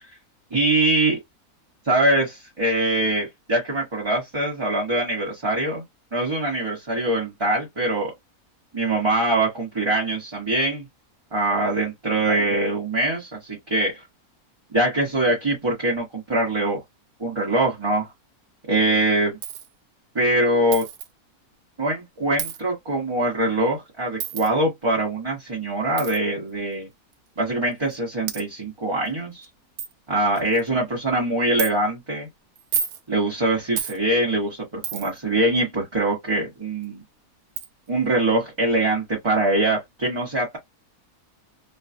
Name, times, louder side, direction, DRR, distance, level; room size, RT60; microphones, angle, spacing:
voice 1, 0.5-1.2 1.8-5.8 6.1-8.1 8.7-10.8 11.3-14.0 14.7-16.8 17.2-18.1 18.7-19.4 20.1-20.8 21.8-26.9 27.4-29.4 30.1-32.3 33.1-37.0 37.9-40.6, right 2 dB, 20° right, 1.0 m, -23 dB
Coin (dropping), 19.4-19.7 20.7-21.1 22.4-22.6 24.2-24.5 26.0-26.2 27.1-27.2 27.9-28.0 28.3-28.4 29.1-29.2 29.4-29.5 29.8-29.9 30.4-30.7 31.6-31.7 32.6-33.0 33.8-34.0 34.8-35.2 36.8-36.9 37.6-37.7, right 8 dB, 80° right, 1.1 m, -29 dB
3.3 x 2.3 x 2.6 m
omnidirectional pair, 1.6 m